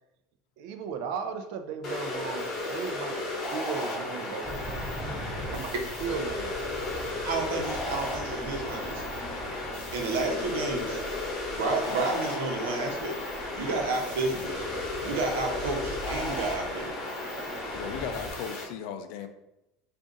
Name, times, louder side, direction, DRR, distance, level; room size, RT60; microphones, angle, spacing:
voice 1, 0.6-5.1 5.5-6.9, right 6 dB, 55° right, 7 dB, 0.4 m, -37 dB
sound 1, 1.8-18.6, left 2 dB, 30° left, 1.0 m, -34 dB
sound 2, 4.4-18.3, equal, ahead, 0.6 m, -43 dB
voice 2, 7.2-9.0 9.9-11.0 11.5-13.2 13.5-14.5 15.0-16.9, right 3 dB, 80° right, 1 dB, 0.9 m, -31 dB
voice 3, 17.7-19.3, left 7 dB, 55° left, 8 dB, 0.4 m, -36 dB
3.7 x 2.5 x 3.8 m, 0.91 s
cardioid pair, 170°, 0 cm